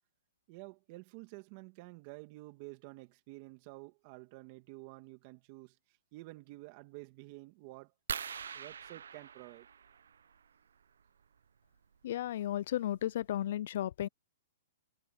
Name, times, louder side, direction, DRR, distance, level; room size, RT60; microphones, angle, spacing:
voice 1, 0.5-7.9 8.5-9.7, right 22 dB, 35° right, 2.4 m, -50 dB
sound 1, 8.1-10.5 12.1-12.2 12.8-12.9 13.2-13.4, right 7 dB, 85° right, 0.9 m, -43 dB
voice 2, 12.0-14.1, left 12 dB, 55° left, 0.4 m, -34 dB
hypercardioid pair, 155°, 0 cm